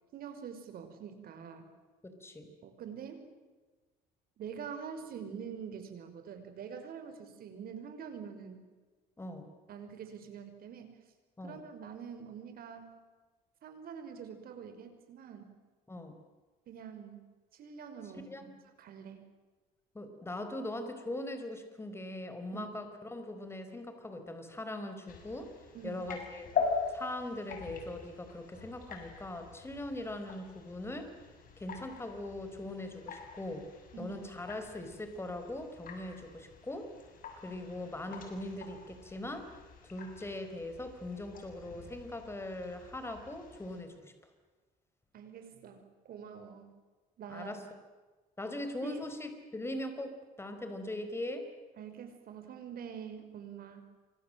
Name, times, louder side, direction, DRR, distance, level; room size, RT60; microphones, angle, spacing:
voice 1, 0.1-1.7 2.6-3.2 4.4-8.6 9.7-11.0 11.4-12.9 13.6-15.5 16.7-17.2 17.5-18.5 18.8-19.3 22.5-22.7 25.7-26.1 33.9-34.2 45.1-46.7 47.2-47.6 48.8-49.0 51.8-53.9, right 7 dB, 60° right, 7 dB, 5.6 m, -45 dB
voice 2, 2.0-2.5 9.2-9.5 11.4-11.6 15.9-16.1 18.3-18.5 19.9-25.5 25.8-26.5 26.9-31.1 31.6-33.7 34.0-36.9 37.4-39.5 39.9-44.1 47.3-47.6 48.4-51.5, left 1 dB, 15° left, 8 dB, 4.5 m, -40 dB
sound 1, 25.1-43.8, left 5 dB, 55° left, 7.1 m, -43 dB
28.0 x 25.0 x 7.8 m, 1.3 s
cardioid pair, 110°, 17 cm